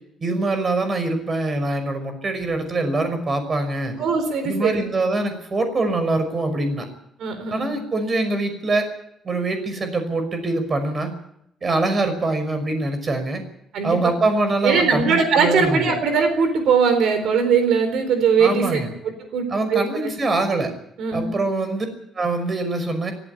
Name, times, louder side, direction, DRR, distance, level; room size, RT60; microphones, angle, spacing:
voice 1, 0.2-3.9 4.4-6.9 7.5-8.9 9.2-11.1 11.6-13.4 13.8-15.9 18.4-18.9 19.5-20.7 21.1-21.9 22.1-23.1, right 2 dB, 35° right, 8 dB, 5.8 m, -23 dB
voice 2, 3.9-4.8 7.2-7.7 13.7-14.1 14.6-20.1 21.0-21.3, right 5 dB, 75° right, 8 dB, 4.1 m, -20 dB
17.5 x 15.5 x 10.0 m, 0.76 s
cardioid pair, 90°, 0 cm